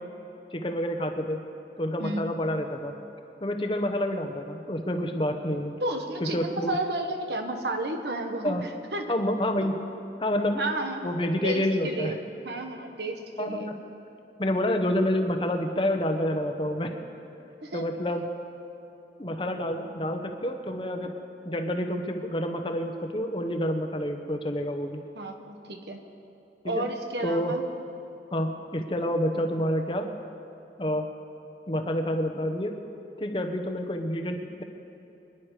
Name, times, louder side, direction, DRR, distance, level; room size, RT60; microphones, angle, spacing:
voice 1, 0.5-1.4 1.8-2.9 3.4-5.7 6.2-6.8 8.4-8.6 9.1-9.8 10.2-10.6 11.0-12.1 13.4-13.6 14.4-16.9 17.7-18.2 19.2-21.1 21.4-25.0 26.6-26.8 27.2-27.5 28.3-30.1 30.8-31.1 31.7-32.8 33.2-34.6, left 1 dB, 30° left, 5 dB, 1.0 m, -28 dB
voice 2, 5.8-9.1 10.6-11.1 11.4-13.7 17.6-17.8 25.1-26.0 26.6-27.6, right 1 dB, 75° right, 5 dB, 1.3 m, -32 dB
25.0 x 10.5 x 4.9 m, 2.9 s
head